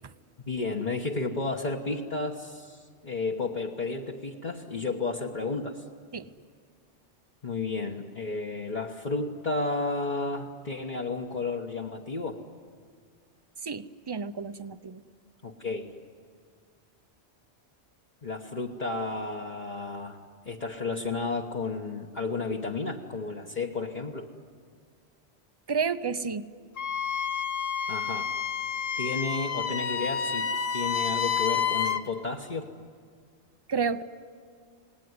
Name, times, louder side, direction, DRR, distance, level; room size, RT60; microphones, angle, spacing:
voice 1, 0.5-5.8 7.4-12.4 15.4-15.9 18.2-20.2 20.4-24.3 27.9-28.3 29.0-32.7, left 3 dB, 40° left, -2 dB, 1.4 m, -32 dB
voice 2, 13.6-15.0 25.7-26.4 33.7-34.0, right 5 dB, 25° right, 13 dB, 0.6 m, -30 dB
Wind instrument woodwind instrument, 26.8-32.0, left 7 dB, 60° left, 1.1 m, -29 dB
27.5 x 19.5 x 9.7 m, 2.1 s
omnidirectional pair, 1.1 m